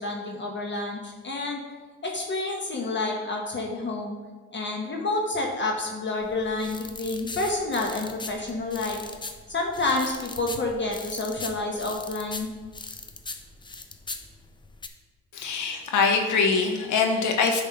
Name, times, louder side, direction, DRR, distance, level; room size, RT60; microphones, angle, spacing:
voice 1, 0.0-1.6 2.0-4.2 4.5-9.0 9.5-12.5, left 2 dB, 40° left, 0 dB, 1.1 m, -29 dB
sound 1, 6.2-14.9, left 3 dB, 15° left, 0.5 m, -40 dB
voice 2, 15.3-17.6, left 4 dB, 80° left, 3 dB, 1.1 m, -23 dB
8.5 x 3.5 x 5.6 m, 1.3 s
cardioid pair, 90°, 30 cm